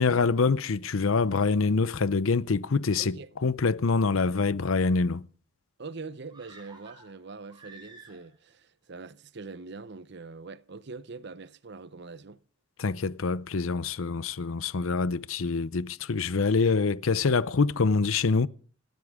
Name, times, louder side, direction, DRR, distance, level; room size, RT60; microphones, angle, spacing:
voice 1, 0.0-5.2 12.8-18.5, left 4 dB, 80° left, 0.7 m, -25 dB
voice 2, 3.0-3.3 5.8-12.4, right 4 dB, 55° right, 0.7 m, -43 dB
sound 1, 6.3-8.5 8.8-8.9, right 3 dB, 20° right, 5.8 m, -52 dB
28.0 x 13.0 x 3.7 m
head